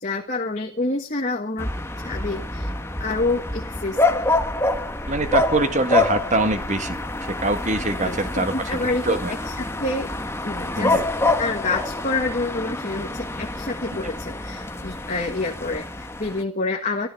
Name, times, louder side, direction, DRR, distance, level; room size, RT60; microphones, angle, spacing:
voice 1, 0.0-1.7 2.0-2.7 3.0-4.2 8.0-9.2 9.4-10.1 10.4-11.0 11.4-17.1, left 3 dB, 35° left, 2 dB, 1.6 m, -27 dB
sound 1, 1.6-16.4, left 2 dB, 10° left, 1.2 m, -27 dB
voice 2, 5.1-9.3 10.8-11.0 14.0-14.1, right 2 dB, 35° right, 9 dB, 1.6 m, -24 dB
14.0 x 13.5 x 7.0 m, 0.42 s
head